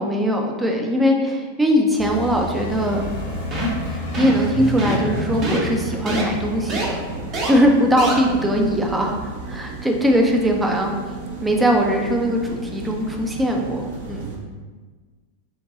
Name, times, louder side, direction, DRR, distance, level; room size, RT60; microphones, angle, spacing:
voice 1, 0.0-3.1 3.9-7.0 7.5-10.9 11.4-14.3, equal, 10° right, 1 dB, 0.5 m, -20 dB
sound 1, 2.0-8.6, left 2 dB, 50° left, 1.0 m, -32 dB
sound 2, 2.7-14.4, right 3 dB, 55° right, 0.7 m, -34 dB
sound 3, 3.5-3.8 4.1-4.4 4.8-5.1 5.4-5.6 6.1-6.2 6.7-6.9 7.3-7.5 8.0-8.1, equal, 30° right, 0.8 m, -24 dB
4.0 x 2.2 x 3.7 m, 1.4 s
figure-of-eight pair, 90°, 0 cm